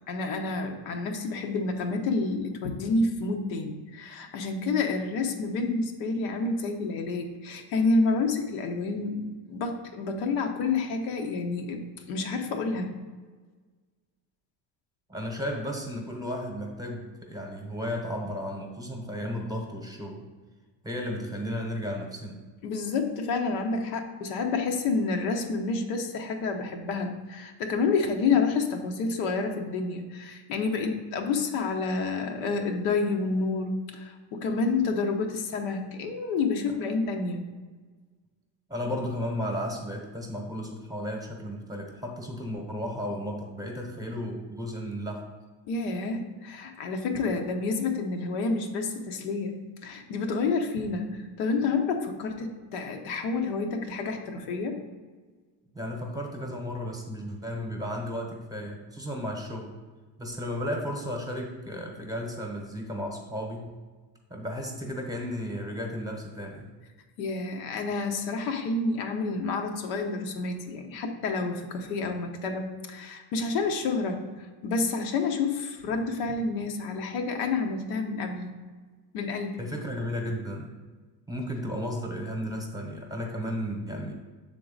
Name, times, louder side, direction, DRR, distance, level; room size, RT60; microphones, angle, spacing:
voice 1, 0.1-11.8 12.1-12.9 22.6-37.4 45.7-49.5 49.8-54.8 67.2-78.5 79.1-79.6, left 4 dB, 85° left, 3 dB, 1.0 m, -29 dB
voice 2, 15.1-20.2 20.8-22.4 38.7-45.3 55.7-59.7 60.2-63.7 64.3-66.7 79.6-80.7 81.3-84.1, equal, 10° right, 1 dB, 0.9 m, -34 dB
6.8 x 3.8 x 3.9 m, 1.4 s
cardioid pair, 120°, 48 cm